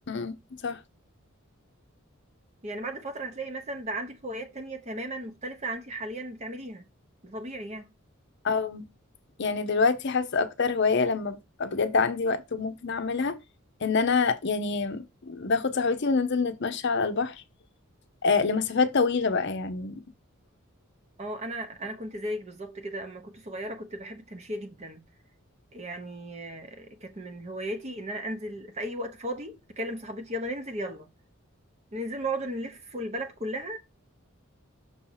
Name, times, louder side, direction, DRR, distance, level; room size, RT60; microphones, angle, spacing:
voice 1, 0.1-0.4 0.6-0.8 8.4-8.9 9.4-13.4 13.8-17.3 18.2-20.0, left 4 dB, 55° left, 0.7 m, -26 dB
voice 2, 2.6-6.9 7.2-7.9 21.2-25.0 25.7-31.1 31.9-33.8, right 1 dB, 30° right, 0.8 m, -35 dB
6.2 x 2.8 x 5.5 m
head